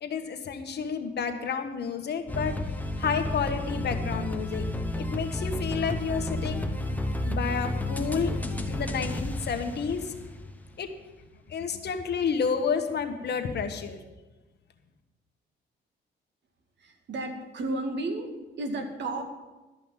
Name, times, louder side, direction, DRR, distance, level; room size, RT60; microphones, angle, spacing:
voice 1, 0.0-2.5 3.0-4.6 5.0-6.7 7.3-8.4 8.7-10.1 10.8-10.9 11.5-14.0, left 6 dB, 55° left, 6 dB, 1.5 m, -30 dB
sound 1, 2.3-10.7, left 1 dB, 10° left, 1.1 m, -31 dB
voice 2, 16.8-19.2, right 2 dB, 60° right, 4 dB, 2.2 m, -33 dB
12.5 x 5.8 x 9.0 m, 1.1 s
cardioid pair, 90°, 20 cm